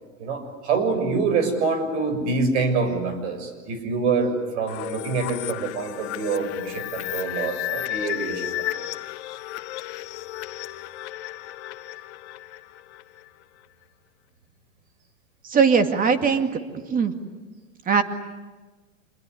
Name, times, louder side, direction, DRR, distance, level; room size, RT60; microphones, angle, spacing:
voice 1, 0.2-8.5, right 4 dB, 60° right, 9 dB, 7.0 m, -25 dB
sound 1, 4.7-13.3, left 15 dB, 55° left, 1.3 m, -33 dB
voice 2, 15.5-16.5 16.9-17.1 17.9-18.0, right 6 dB, 20° right, 8 dB, 2.2 m, -19 dB
27.5 x 22.0 x 10.0 m, 1.3 s
hypercardioid pair, 125°, 40 cm